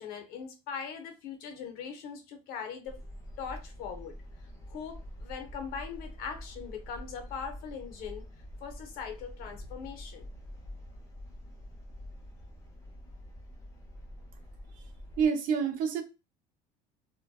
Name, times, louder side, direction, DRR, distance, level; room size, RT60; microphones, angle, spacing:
voice 1, 0.0-3.0 3.4-4.1 4.7-8.2 8.6-10.3, left 6 dB, 70° left, 0.8 m, -40 dB
sound 1, 2.8-15.3, left 1 dB, 20° left, 0.7 m, -46 dB
voice 2, 15.2-16.0, right 6 dB, 60° right, 0.6 m, -27 dB
2.5 x 2.2 x 2.2 m
cardioid pair, 130°, 16 cm